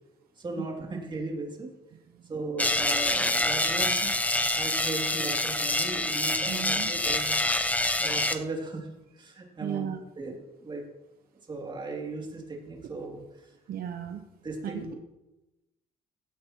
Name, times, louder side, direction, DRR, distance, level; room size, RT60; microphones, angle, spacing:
voice 1, 0.4-1.7 2.3-9.9 10.2-10.9 11.5-13.5 14.4-14.9, right 2 dB, 30° right, 0 dB, 2.7 m, -37 dB
sound 1, 2.6-8.4, left 2 dB, 10° left, 0.8 m, -26 dB
voice 2, 6.5-6.9 9.6-10.0 13.7-14.2 14.6-14.9, right 9 dB, 60° right, 5 dB, 1.0 m, -35 dB
16.5 x 10.5 x 3.0 m, 1.0 s
cardioid pair, 110°, 17 cm